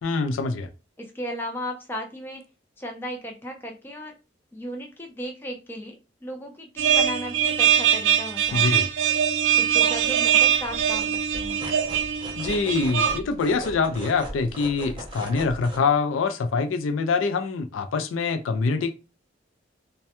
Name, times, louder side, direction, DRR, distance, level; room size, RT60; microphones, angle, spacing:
voice 1, 0.0-0.7 8.5-8.9 12.4-18.9, left 4 dB, 85° left, 0.4 m, -25 dB
voice 2, 1.0-2.4 2.8-4.1 4.5-8.7 9.6-11.7, equal, 10° left, 0.4 m, -35 dB
sound 1, 6.8-13.2, right 9 dB, 85° right, 0.4 m, -22 dB
sound 2, 9.4-9.5 9.9-10.2 10.4-15.8, right 1 dB, 25° right, 0.7 m, -39 dB
2.2 x 2.1 x 2.8 m
head